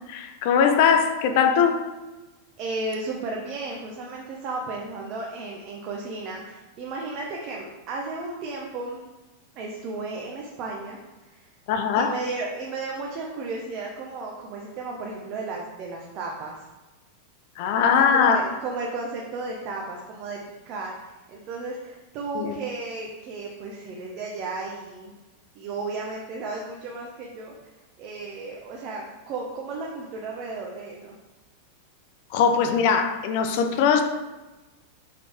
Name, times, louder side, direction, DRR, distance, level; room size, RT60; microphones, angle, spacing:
voice 1, 0.1-1.8 11.7-12.1 17.6-18.4 22.3-22.5 32.3-34.0, left 7 dB, 50° left, 6 dB, 0.6 m, -20 dB
voice 2, 2.6-9.0 9.5-11.5 11.9-16.6 17.9-20.4 20.6-25.1 25.6-27.5 28.0-31.1, right 3 dB, 40° right, -1 dB, 0.9 m, -34 dB
5.8 x 5.2 x 3.5 m, 1.1 s
figure-of-eight pair, 90°, 0 cm